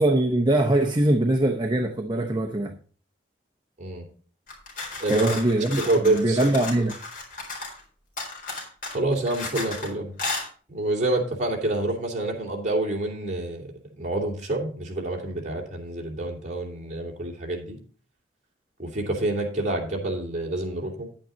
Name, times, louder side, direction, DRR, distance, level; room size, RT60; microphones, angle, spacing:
voice 1, 0.0-2.8 5.1-6.9, right 1 dB, 25° right, 0.8 m, -22 dB
sound 1, 4.5-7.8 8.2-9.9 10.2-10.5, left 3 dB, 45° left, 4.2 m, -34 dB
voice 2, 5.0-5.3 5.8-6.5 8.9-10.1 10.7-17.8 18.8-21.1, right 2 dB, 40° right, 3.0 m, -27 dB
10.5 x 9.0 x 4.0 m
head